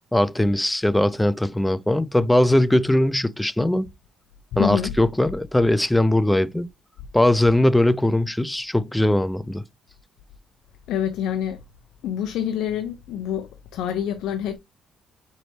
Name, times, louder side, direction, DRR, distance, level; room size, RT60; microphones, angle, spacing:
voice 1, 0.1-3.9 4.6-6.7 7.1-9.6, left 1 dB, 10° left, 0.3 m, -20 dB
voice 2, 4.5-4.9 10.9-11.6 12.0-14.6, left 9 dB, 90° left, 0.4 m, -26 dB
4.0 x 3.2 x 3.1 m
cardioid pair, 90°, 0 cm